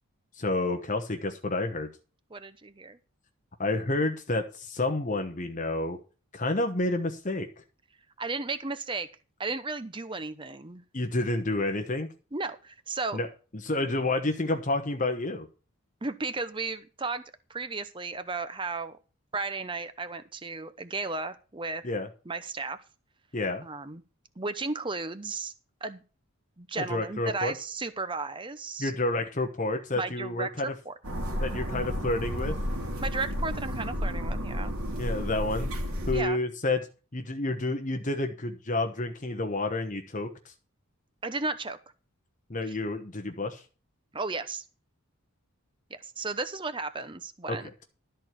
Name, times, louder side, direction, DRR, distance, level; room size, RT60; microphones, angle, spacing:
voice 1, 0.4-1.9 3.6-6.0 6.3-7.5 10.9-12.1 13.1-13.3 13.5-15.5 21.8-22.1 23.3-23.6 26.8-27.5 28.8-30.7 31.4-32.6 35.0-35.7 36.1-36.9 37.1-40.5 42.5-43.6 47.5-47.6, left 2 dB, 35° left, 5 dB, 1.0 m, -29 dB
voice 2, 2.3-3.0 8.2-9.1 9.4-10.8 12.3-13.2 16.0-17.2 17.5-19.0 19.3-21.8 22.3-22.8 23.6-24.0 24.4-25.5 25.8-26.0 26.6-28.9 29.9-30.9 33.0-34.7 36.1-36.4 41.2-41.8 42.7-42.8 44.1-44.6 45.9-47.8, right 3 dB, 20° right, 12 dB, 0.8 m, -34 dB
sound 1, 31.0-36.2, equal, 80° right, 2.5 m, -32 dB
13.0 x 4.5 x 8.1 m, 0.35 s
head